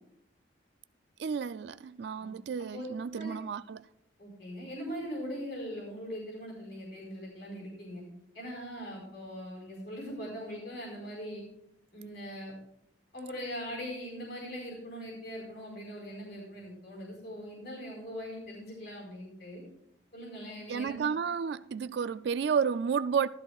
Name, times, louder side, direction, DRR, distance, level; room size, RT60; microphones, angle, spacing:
voice 1, 1.2-3.9 20.7-23.3, right 6 dB, 65° right, 0.3 m, -31 dB
voice 2, 4.2-8.0 8.3-11.4 11.9-12.5 13.1-19.6 20.1-21.1, equal, 60° left, 4.6 m, -41 dB
15.5 x 13.0 x 2.4 m
head